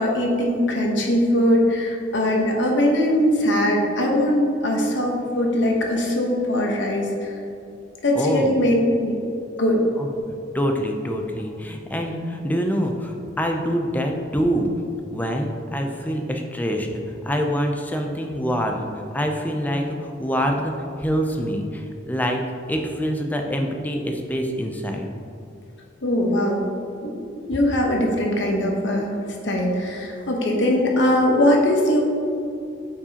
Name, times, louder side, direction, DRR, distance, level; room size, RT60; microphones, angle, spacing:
voice 1, 0.0-7.4 8.0-8.7 9.0-9.2 9.6-9.8 26.0-26.6 27.0-27.2 27.5-29.1 29.4-32.0, left 1 dB, 65° left, 0 dB, 1.0 m, -21 dB
voice 2, 8.2-8.5 10.0-10.1 10.5-14.7 15.1-18.9 19.1-20.7 21.0-22.4 22.7-25.1, equal, 10° left, 3 dB, 0.5 m, -25 dB
8.6 x 4.8 x 2.9 m, 2.5 s
head